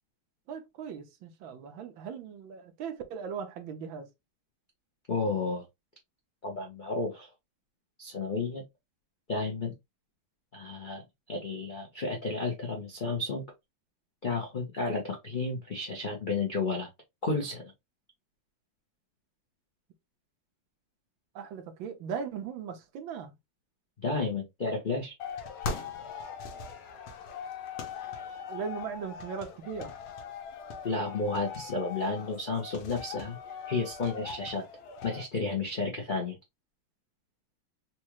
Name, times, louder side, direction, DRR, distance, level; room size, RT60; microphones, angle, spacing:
voice 1, 0.5-4.1 21.3-23.3 28.5-29.9, right 6 dB, 75° right, 1.5 m, -38 dB
voice 2, 5.1-5.6 6.4-7.3 8.0-8.6 9.3-9.7 10.5-11.0 11.3-13.4 14.2-16.9 17.2-17.6 24.0-25.1 30.8-33.4 33.7-34.6 35.0-36.4, left 3 dB, 55° left, 0.5 m, -32 dB
sound 1, 25.2-35.2, left 6 dB, 85° left, 1.7 m, -40 dB
4.3 x 2.4 x 2.9 m
omnidirectional pair, 2.2 m